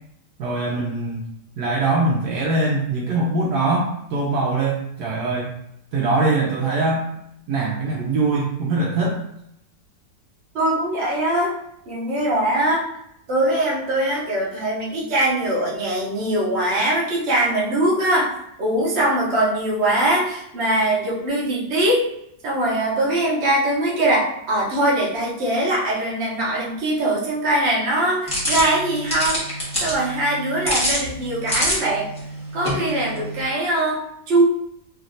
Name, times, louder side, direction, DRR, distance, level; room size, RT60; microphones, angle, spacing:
voice 1, 0.4-1.2 1.6-5.5 5.9-7.1 7.5-9.2, right 2 dB, 70° right, -3 dB, 1.0 m, -22 dB
voice 2, 10.5-11.6 11.9-12.9 13.3-22.1 22.4-29.4 29.8-32.1 32.5-34.4, right 1 dB, 45° right, -5 dB, 1.0 m, -22 dB
sound 1, 28.3-33.4, equal, 5° left, 1.1 m, -27 dB
3.2 x 2.8 x 2.6 m, 0.76 s
omnidirectional pair, 1.9 m